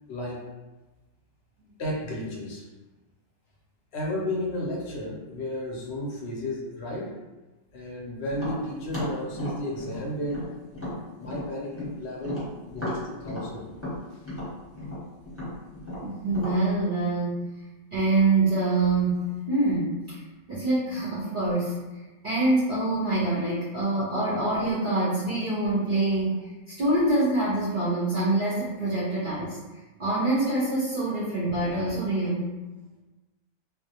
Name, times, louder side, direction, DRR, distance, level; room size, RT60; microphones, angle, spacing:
voice 1, 0.1-0.5 1.8-2.7 3.9-7.2 7.7-10.5 11.2-13.7 14.1-14.2, left 1 dB, 65° left, -3 dB, 0.7 m, -33 dB
Tap, 8.3-11.9 12.2-16.6, left 1 dB, 10° left, 0.7 m, -35 dB
voice 2, 16.0-17.5 17.9-20.2 20.5-21.8 22.2-29.6 30.0-32.5, right 2 dB, 55° right, -8 dB, 0.6 m, -25 dB
2.3 x 2.0 x 2.7 m, 1.1 s
omnidirectional pair, 1.4 m